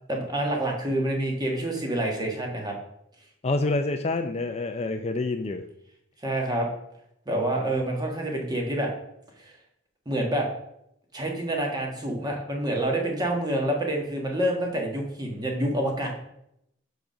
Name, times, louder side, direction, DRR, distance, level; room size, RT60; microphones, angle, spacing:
voice 1, 0.1-2.7 6.2-6.7 7.3-8.9 9.4-9.5 10.0-10.5 11.1-16.1, right 1 dB, 20° right, 1 dB, 1.4 m, -27 dB
voice 2, 3.4-5.6, left 2 dB, 30° left, 7 dB, 0.4 m, -27 dB
5.1 x 5.0 x 6.2 m, 0.77 s
head